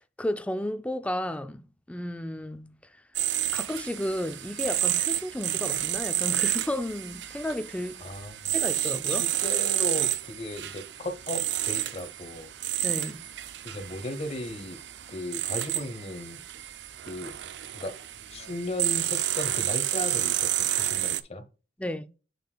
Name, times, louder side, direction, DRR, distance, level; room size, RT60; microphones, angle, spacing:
voice 1, 0.0-2.8 3.5-8.0 8.5-9.3 12.8-13.3 21.8-22.1, left 1 dB, 5° left, 0.4 m, -33 dB
sound 1, 3.1-21.2, right 14 dB, 70° right, 0.5 m, -30 dB
voice 2, 8.0-12.5 13.6-14.8 15.1-16.4 17.1-17.3 17.7-17.9 18.3-21.4, left 1 dB, 35° left, 0.9 m, -36 dB
6.7 x 6.6 x 2.3 m
head